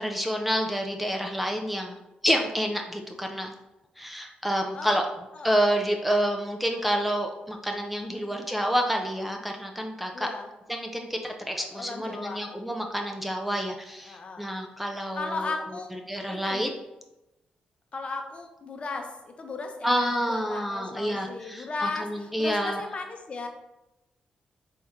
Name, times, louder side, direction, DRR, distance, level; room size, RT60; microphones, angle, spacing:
voice 1, 0.0-2.0 2.2-3.5 4.0-5.1 5.4-10.3 10.7-15.5 16.1-16.8 19.8-22.8, equal, 5° right, 2 dB, 0.5 m, -28 dB
voice 2, 10.1-10.5 11.6-12.5 14.0-14.5 15.1-15.9 16.2-16.6 17.9-23.5, left 3 dB, 45° left, 4 dB, 0.7 m, -36 dB
4.5 x 2.7 x 3.6 m, 0.96 s
cardioid pair, 85°, 3 cm